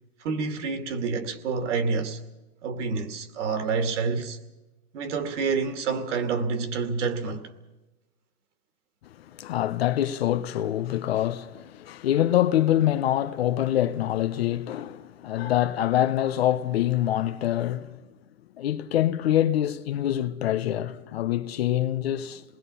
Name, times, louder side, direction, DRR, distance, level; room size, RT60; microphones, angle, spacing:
voice 1, 0.2-2.2 2.6-4.4 4.9-7.5, right 5 dB, 50° right, 2.5 m, -28 dB
voice 2, 9.2-18.0 18.6-22.4, left 12 dB, 45° left, 0.8 m, -25 dB
27.0 x 20.5 x 5.6 m
hypercardioid pair, 160°, 45 cm